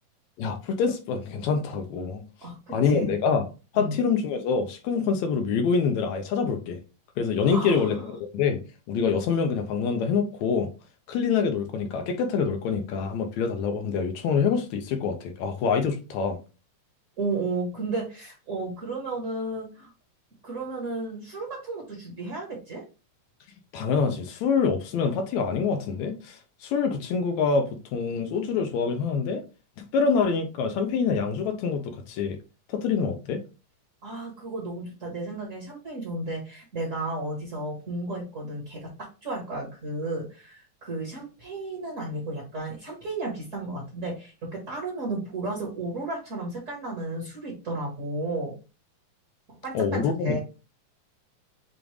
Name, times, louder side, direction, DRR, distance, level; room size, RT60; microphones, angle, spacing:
voice 1, 0.4-2.2 2.7-3.5 3.7-6.8 7.2-8.6 8.9-10.7 11.1-16.4 23.7-29.4 29.8-32.4 32.7-33.4 49.7-50.4, left 5 dB, 80° left, 1.9 m, -26 dB
voice 2, 2.4-3.1 3.8-4.0 7.4-8.1 17.2-19.9 20.4-22.8 34.0-48.6 49.5-50.4, right 2 dB, 40° right, 1.2 m, -33 dB
7.0 x 2.5 x 3.1 m
omnidirectional pair, 3.5 m